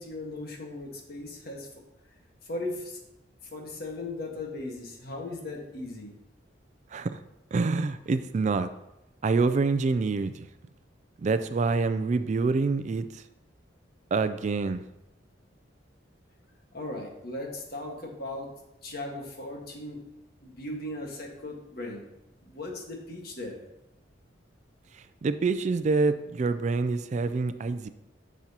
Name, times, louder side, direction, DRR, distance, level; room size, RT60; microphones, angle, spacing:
voice 1, 0.0-1.7 2.5-3.0 3.5-6.1 16.7-18.5 18.8-20.0 20.4-22.0 22.4-23.6, left 2 dB, 55° left, 1.5 m, -37 dB
voice 2, 7.5-8.7 9.2-10.5 11.2-13.2 14.1-14.8 24.9-27.9, right 4 dB, 40° right, 0.3 m, -26 dB
10.5 x 6.0 x 2.9 m
head